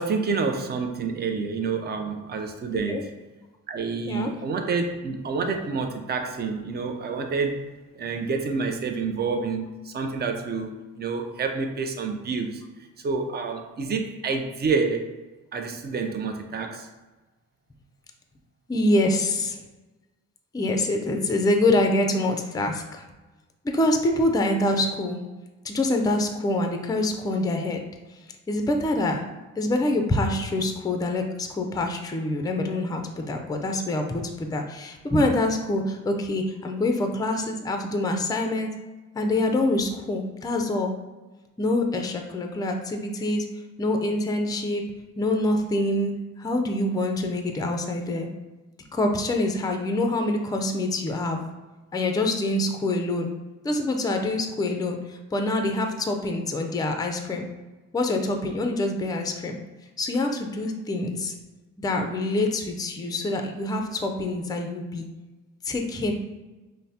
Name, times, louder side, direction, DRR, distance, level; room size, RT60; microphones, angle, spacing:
voice 1, 0.0-3.1 3.7-15.1 15.5-16.9, right 4 dB, 35° right, 4 dB, 0.6 m, -28 dB
voice 2, 18.7-19.6 20.5-23.0 23.6-25.3 25.6-27.8 28.5-29.2 29.6-38.7 39.1-40.9 41.6-43.5 43.8-44.8 45.2-48.3 48.9-51.4 51.9-53.3 53.6-57.4 57.9-59.6 60.0-61.3 61.8-65.1 65.6-66.1, left 2 dB, 15° left, 4 dB, 0.5 m, -25 dB
5.4 x 2.1 x 2.7 m, 1.2 s
cardioid pair, 90°, 30 cm